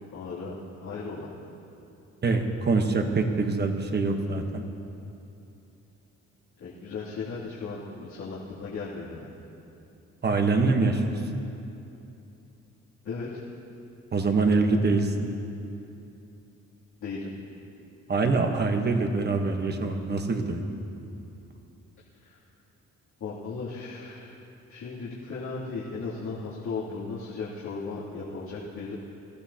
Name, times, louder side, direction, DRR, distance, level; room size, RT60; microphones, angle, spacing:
voice 1, 0.1-0.5 0.8-1.3 6.6-9.3 13.0-13.4 17.0-17.3 22.2-22.4 23.2-24.3 24.7-28.9, left 4 dB, 90° left, -11 dB, 3.0 m, -36 dB
voice 2, 2.2-4.6 10.2-11.2 14.1-15.1 18.1-20.6, right 3 dB, 35° right, 4 dB, 1.2 m, -24 dB
23.5 x 15.0 x 2.9 m, 2.8 s
cardioid pair, 125°, 30 cm